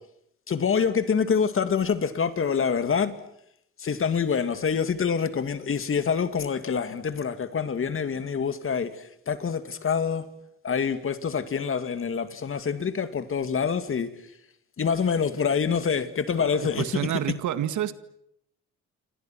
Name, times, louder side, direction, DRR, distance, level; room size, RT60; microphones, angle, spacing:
voice 1, 0.5-3.1 3.8-8.9 9.3-10.2 10.6-14.1 14.8-17.1, left 6 dB, 45° left, 2.4 m, -26 dB
voice 2, 16.4-17.9, right 11 dB, 75° right, 2.0 m, -29 dB
29.0 x 27.0 x 6.2 m
cardioid pair, 90°, 30 cm